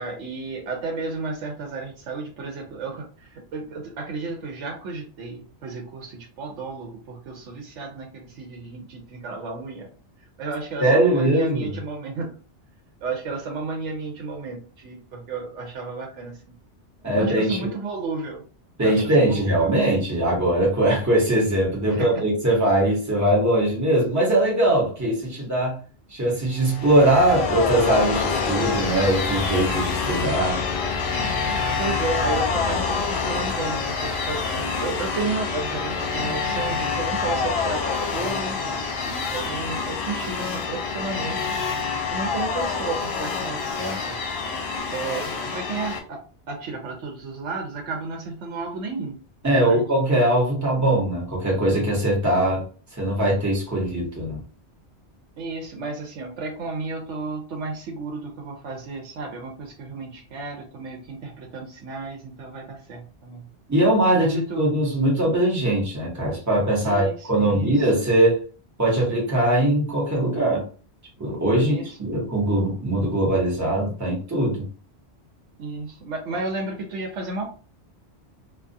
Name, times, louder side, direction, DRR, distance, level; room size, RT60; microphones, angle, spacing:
voice 1, 0.0-9.9 10.4-12.3 13.0-16.3 17.1-18.5 18.8-19.7 21.9-22.2 31.7-41.5 42.1-44.2 44.9-46.2 46.5-49.2 49.5-49.8 55.4-63.4 64.2-64.6 66.8-67.7 71.6-72.0 75.6-77.5, right 3 dB, 85° right, 0 dB, 1.0 m, -33 dB
voice 2, 10.8-11.8 17.0-17.7 18.8-25.8 26.1-30.6 49.4-52.6 53.0-54.4 63.7-68.4 68.8-70.6 71.2-74.6, right 1 dB, 15° right, -5 dB, 1.0 m, -21 dB
sound 1, 26.6-46.0, left 5 dB, 70° left, 0.8 m, -26 dB
2.4 x 2.3 x 2.6 m, 0.38 s
omnidirectional pair, 1.2 m